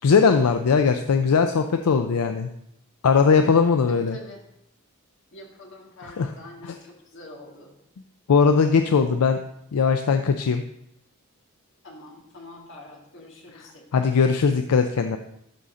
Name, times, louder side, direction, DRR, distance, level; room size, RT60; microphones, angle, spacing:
voice 1, 0.0-2.5 3.0-4.2 6.2-6.3 8.3-9.4 9.7-10.6 13.9-15.2, left 5 dB, 80° left, 7 dB, 0.4 m, -19 dB
voice 2, 3.9-4.4 5.3-7.7 11.8-14.1, left 1 dB, 60° left, -1 dB, 1.8 m, -45 dB
12.0 x 4.2 x 3.7 m, 0.78 s
head